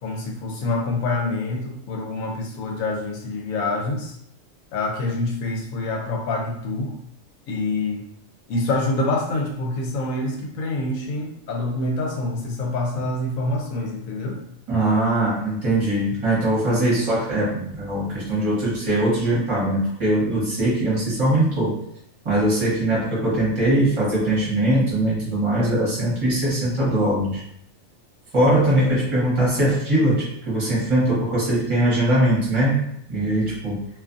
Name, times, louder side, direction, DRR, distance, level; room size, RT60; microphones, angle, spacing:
voice 1, 0.0-4.1 4.7-6.9 7.5-8.1 8.5-14.4 16.9-17.0, left 2 dB, 90° left, 1 dB, 1.0 m, -26 dB
voice 2, 14.7-21.8 22.2-27.4 28.3-33.9, right 1 dB, 25° right, -7 dB, 1.0 m, -21 dB
2.5 x 2.4 x 2.5 m, 0.71 s
omnidirectional pair, 1.4 m